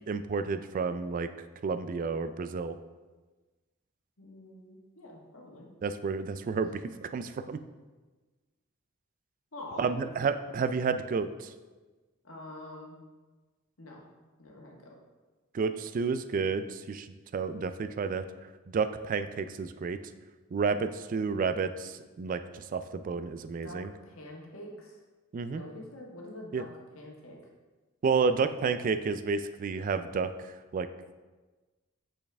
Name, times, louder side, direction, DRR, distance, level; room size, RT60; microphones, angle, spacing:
voice 1, 0.1-1.3 1.6-2.7 5.8-7.6 9.8-11.5 15.5-17.1 17.3-18.2 18.7-20.0 20.5-23.9 25.3-25.6 26.5-26.6 28.0-30.9, right 5 dB, 40° right, 11 dB, 0.3 m, -30 dB
voice 2, 4.2-5.7 9.5-10.1 12.2-13.0 13.8-14.1 14.4-14.9 23.6-23.8 24.0-25.0 25.5-26.7 26.9-27.4, left 1 dB, 85° left, -1 dB, 1.4 m, -45 dB
6.4 x 5.8 x 3.4 m, 1.3 s
head